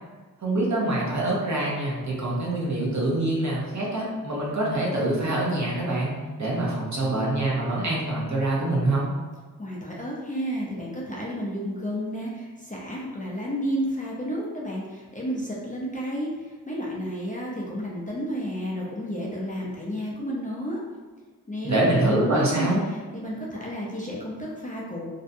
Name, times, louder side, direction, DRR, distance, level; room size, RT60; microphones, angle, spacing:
voice 1, 0.4-9.1 21.6-22.8, right 1 dB, 50° right, -4 dB, 0.7 m, -25 dB
voice 2, 9.6-20.8 21.5-25.1, equal, 20° left, -5 dB, 0.4 m, -31 dB
2.6 x 2.2 x 2.5 m, 1.4 s
wide cardioid pair, 90°, 36 cm